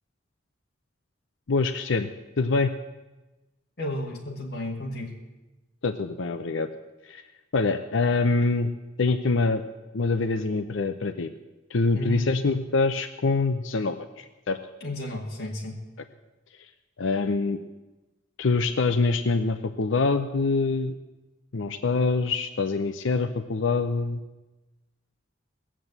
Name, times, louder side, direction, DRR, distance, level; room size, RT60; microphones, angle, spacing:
voice 1, 1.5-2.1 2.4-2.7 5.8-6.7 7.0-7.2 7.5-8.7 9.0-9.6 9.9-11.3 11.7-14.6 17.0-17.6 18.4-20.9 21.5-24.2, left 3 dB, 85° left, 8 dB, 0.7 m, -25 dB
voice 2, 3.8-5.1 11.9-12.3 14.8-15.8, left 1 dB, 50° left, -2 dB, 1.9 m, -32 dB
18.5 x 7.5 x 8.0 m, 1.1 s
head